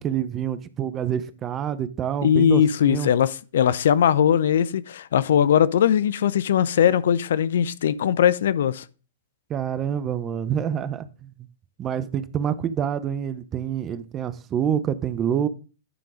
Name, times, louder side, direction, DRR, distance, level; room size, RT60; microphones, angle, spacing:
voice 1, 0.0-3.1 9.5-11.3 11.8-15.5, right 9 dB, 25° right, 0.7 m, -27 dB
voice 2, 2.2-8.8, left 9 dB, 65° left, 0.4 m, -20 dB
9.8 x 3.8 x 4.9 m
hypercardioid pair, 115°, 0 cm